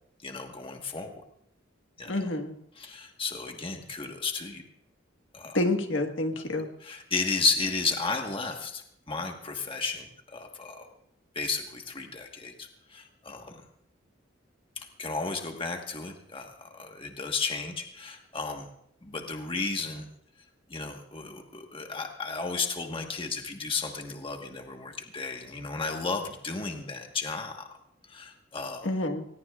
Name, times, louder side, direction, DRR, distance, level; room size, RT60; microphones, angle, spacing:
voice 1, 0.2-1.2 2.0-2.3 2.7-4.6 5.3-5.6 6.4-6.5 6.8-10.9 11.3-13.6 14.8-18.7 19.0-20.1 20.7-27.7 28.1-28.9, left 4 dB, 25° left, 3 dB, 1.4 m, -33 dB
voice 2, 2.1-2.5 5.5-6.7 28.8-29.2, left 2 dB, 70° left, 5 dB, 1.5 m, -28 dB
21.0 x 20.0 x 2.4 m, 0.73 s
head